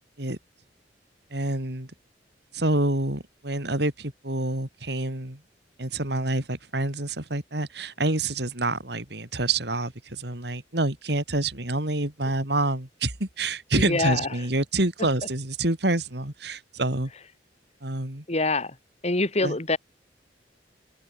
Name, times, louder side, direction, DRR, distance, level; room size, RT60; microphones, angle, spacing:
voice 1, 1.3-1.9 2.5-5.4 5.8-17.1 17.8-18.2 19.4-19.6, right 2 dB, 60° right, 3.5 m, -27 dB
voice 2, 13.8-14.3 18.3-18.8 19.0-19.8, left 2 dB, 35° left, 2.3 m, -25 dB
head